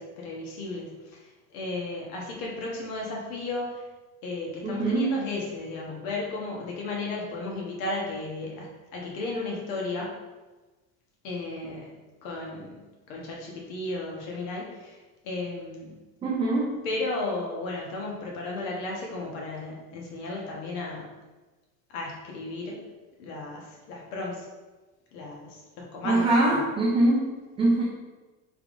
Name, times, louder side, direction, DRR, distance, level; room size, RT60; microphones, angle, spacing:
voice 1, 0.0-3.8 4.2-10.1 11.2-11.9 12.2-12.7 13.1-15.9 16.8-21.0 21.9-22.8 23.2-24.5 25.1-26.7, left 2 dB, 80° left, -2 dB, 1.3 m, -34 dB
voice 2, 4.6-5.2 16.2-16.8 26.0-27.8, right 2 dB, 15° right, -5 dB, 0.4 m, -23 dB
5.5 x 3.6 x 2.5 m, 1.2 s
cardioid pair, 160°, 42 cm